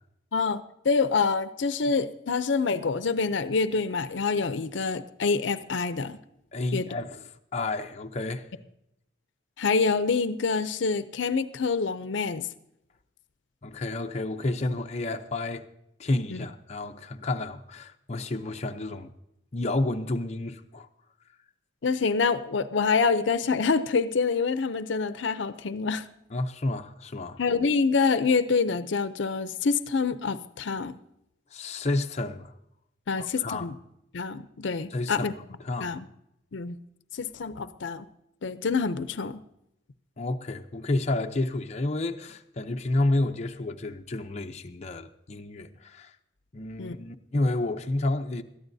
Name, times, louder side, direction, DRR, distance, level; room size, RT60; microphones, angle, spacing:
voice 1, 0.3-6.2 6.7-6.9 9.6-12.5 16.3-16.5 21.8-26.1 27.4-31.0 33.1-33.7 34.1-35.3 35.8-36.1 36.5-36.8 37.1-38.1 38.4-39.4 46.8-47.0, left 4 dB, 75° left, 0.6 m, -26 dB
voice 2, 6.5-7.2 7.5-8.5 13.6-15.7 16.0-19.1 19.5-20.9 26.3-27.4 31.5-32.5 33.2-33.7 34.9-35.3 35.6-35.9 40.2-46.1 46.5-48.4, left 2 dB, 35° left, 0.6 m, -30 dB
21.0 x 13.5 x 2.7 m
head